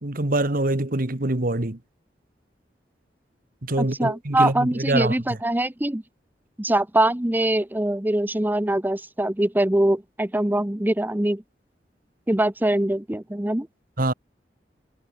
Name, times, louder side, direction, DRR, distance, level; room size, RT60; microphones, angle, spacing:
voice 1, 0.0-1.8 3.6-5.2 14.0-14.1, right 2 dB, 55° right, 1.8 m, -24 dB
voice 2, 3.8-6.0 6.6-11.4 12.3-13.7, right 1 dB, 10° right, 0.8 m, -23 dB
head